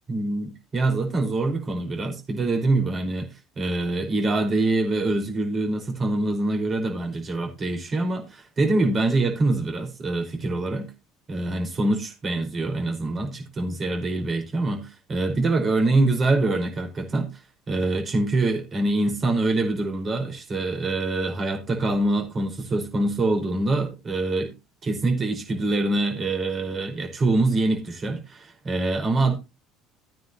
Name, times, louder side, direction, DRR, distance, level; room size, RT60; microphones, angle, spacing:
voice 1, 0.1-3.3 3.6-10.9 11.3-24.5 24.8-29.4, right 2 dB, 35° right, 5.0 m, -25 dB
15.5 x 9.3 x 3.0 m
hypercardioid pair, 65°, 0 cm